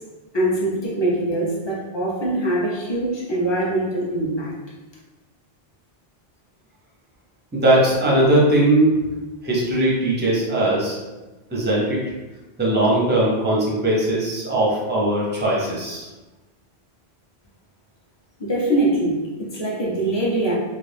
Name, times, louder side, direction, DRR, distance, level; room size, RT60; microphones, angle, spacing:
voice 1, 0.3-4.5 18.4-20.6, right 1 dB, 30° left, -5 dB, 0.6 m, -23 dB
voice 2, 7.5-9.1 9.4-11.0 11.5-12.0 12.6-16.1, right 1 dB, 15° right, -5 dB, 0.5 m, -19 dB
2.4 x 2.3 x 3.3 m, 1.1 s
omnidirectional pair, 1.1 m